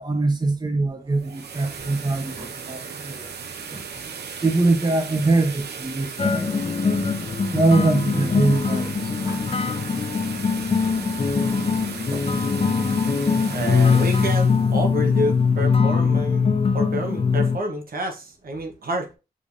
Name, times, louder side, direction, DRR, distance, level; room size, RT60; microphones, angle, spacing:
voice 1, 0.0-3.3 3.7-4.1 4.4-6.7 7.5-8.9 9.3-9.4 12.1-12.3, right 2 dB, 25° right, 0.9 m, -23 dB
sound 1, 1.0-15.9, right 6 dB, 85° right, 0.7 m, -37 dB
sound 2, 6.2-17.6, left 5 dB, 35° left, 0.5 m, -22 dB
voice 2, 13.5-19.2, equal, 60° right, 1.1 m, -28 dB
5.3 x 3.4 x 2.6 m
wide cardioid pair, 95°, 17 cm